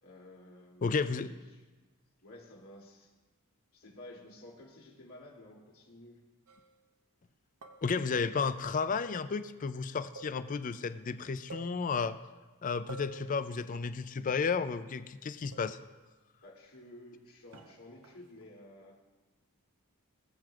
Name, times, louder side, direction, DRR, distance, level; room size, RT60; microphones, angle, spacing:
voice 1, 0.0-1.6 2.2-3.1 3.7-6.2 16.4-19.0, left 1 dB, 70° left, -3 dB, 2.8 m, -53 dB
voice 2, 0.8-1.3 7.8-12.2 12.6-15.8, left 5 dB, 35° left, 12 dB, 0.4 m, -32 dB
sound 1, 6.5-6.8 7.6-8.1 8.9-9.5 10.2-10.8 11.1-11.2 11.5-12.3 12.9-13.5 14.3-14.8 15.5-16.0 17.5-18.5, right 3 dB, 75° right, 0.9 m, -50 dB
21.0 x 7.7 x 2.4 m, 1.2 s
head